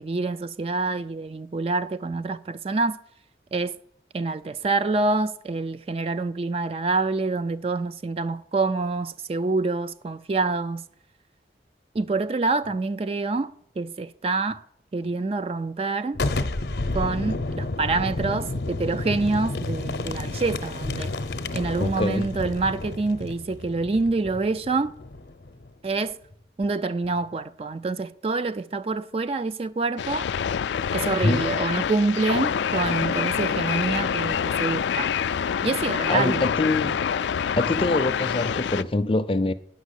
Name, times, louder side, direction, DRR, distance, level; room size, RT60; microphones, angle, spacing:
voice 1, 0.0-3.0 3.5-3.7 4.1-10.8 11.9-14.6 14.9-16.2 16.9-21.1 21.5-24.9 25.8-26.2 26.6-30.3 30.9-35.1 35.6-36.4, right 3 dB, 35° right, 0.4 m, -26 dB
Boom, 16.1-25.7, left 2 dB, 65° left, 0.7 m, -31 dB
voice 2, 21.8-22.3 31.2-31.5 36.1-36.9 37.5-39.5, left 2 dB, 30° left, 0.5 m, -24 dB
sound 1, 30.0-38.8, left 7 dB, 85° left, 0.4 m, -26 dB
9.3 x 6.0 x 8.1 m
head